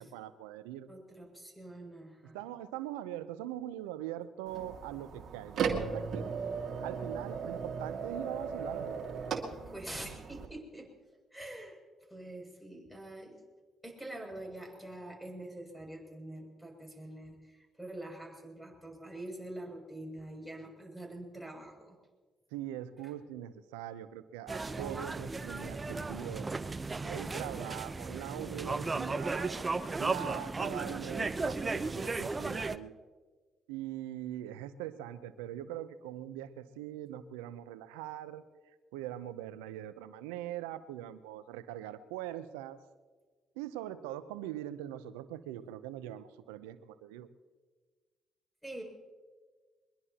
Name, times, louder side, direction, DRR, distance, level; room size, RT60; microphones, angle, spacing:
voice 1, 0.0-0.9 2.3-6.3 6.8-9.0 22.5-26.5 27.0-29.6 30.0-32.9 33.7-38.4 38.9-42.8 43.6-47.3, right 12 dB, 85° right, 14 dB, 0.7 m, -42 dB
voice 2, 0.9-2.5 9.7-10.9 11.3-11.8 12.1-13.4 13.8-22.0 48.6-48.8, right 1 dB, ahead, 2 dB, 7.1 m, -45 dB
sound 1, 4.5-10.5, right 6 dB, 60° right, 2.2 m, -37 dB
sound 2, 24.5-32.8, right 3 dB, 30° right, 0.8 m, -35 dB
22.5 x 21.5 x 3.0 m, 1.5 s
hypercardioid pair, 50°, 0 cm